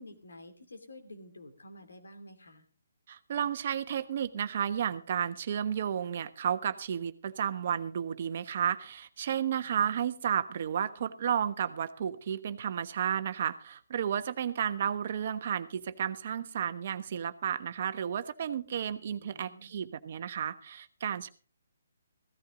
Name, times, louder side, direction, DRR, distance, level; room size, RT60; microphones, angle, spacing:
voice 1, 0.0-2.7 9.8-10.0 19.2-19.7, left 1 dB, 80° left, 6 dB, 2.9 m, -50 dB
voice 2, 3.1-21.3, right 8 dB, 50° right, 10 dB, 1.2 m, -32 dB
16.0 x 13.5 x 3.8 m, 0.35 s
figure-of-eight pair, 140°, 0 cm